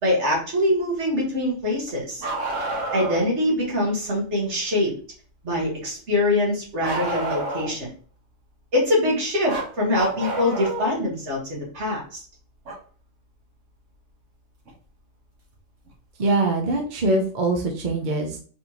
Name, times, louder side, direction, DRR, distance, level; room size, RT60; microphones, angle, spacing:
voice 1, 0.0-2.3 2.9-4.9 5.4-7.9 8.7-12.2, left 1 dB, 70° right, -2 dB, 1.9 m, -24 dB
Bark, 2.2-3.3 6.8-7.9 9.5-11.0 12.6-12.7 14.7-14.8 15.9-16.0, right 2 dB, 85° right, 1.5 m, -29 dB
voice 2, 16.2-18.4, right 2 dB, 45° right, 2 dB, 0.8 m, -23 dB
4.3 x 3.5 x 2.9 m, 0.42 s
omnidirectional pair, 1.2 m